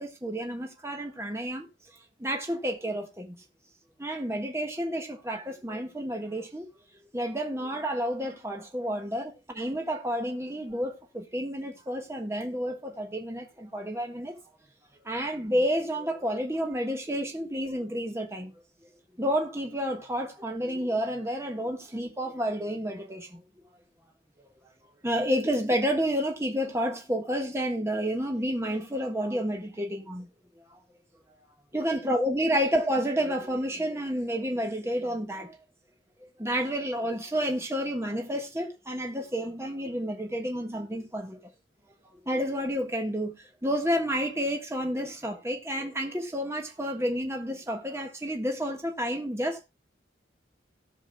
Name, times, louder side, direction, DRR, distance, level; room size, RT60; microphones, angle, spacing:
voice 1, 0.0-1.7 2.2-3.4 4.0-6.7 7.1-14.4 15.0-18.5 19.2-23.4 25.0-30.3 30.7-30.8 31.7-35.6 36.4-41.4 42.3-49.6, equal, 15° right, 1.4 m, -30 dB
18.0 x 6.1 x 2.2 m
head